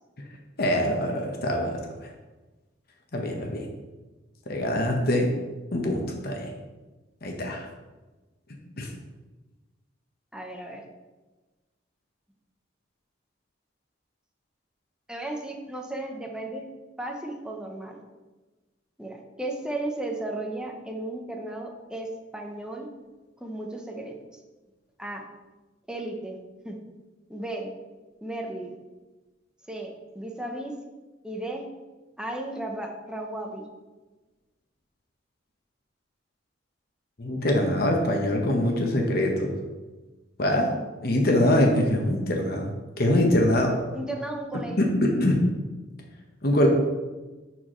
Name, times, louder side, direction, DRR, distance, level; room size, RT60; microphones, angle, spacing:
voice 1, 0.6-2.1 3.1-3.7 4.5-5.3 5.7-6.5 7.2-7.7 8.8-8.9 37.2-39.5 40.4-40.7 41.0-43.7 44.8-45.4 46.4-46.7, left 1 dB, 50° left, 1 dB, 1.0 m, -24 dB
voice 2, 10.3-10.8 15.1-16.7 17.0-18.0 19.0-22.9 23.4-24.1 25.0-25.2 25.9-26.4 26.6-26.8 27.3-27.7 28.2-28.7 29.7-30.7 31.2-31.6 32.2-33.7 43.9-44.9, right 1 dB, 5° right, 2 dB, 0.7 m, -34 dB
11.5 x 4.3 x 3.1 m, 1.2 s
head